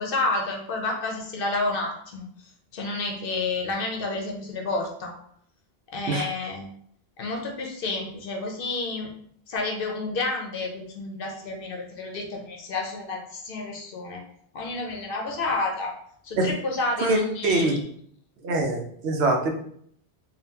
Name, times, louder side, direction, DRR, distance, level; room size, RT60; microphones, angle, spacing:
voice 1, 0.0-2.3 2.7-5.1 5.9-6.7 7.2-9.1 9.5-14.2 14.5-15.9 16.2-17.8, left 3 dB, 60° left, 2 dB, 0.8 m, -30 dB
voice 2, 17.0-17.8 18.4-19.5, right 2 dB, 75° right, 2 dB, 0.8 m, -24 dB
3.8 x 2.3 x 2.7 m, 0.65 s
omnidirectional pair, 1.1 m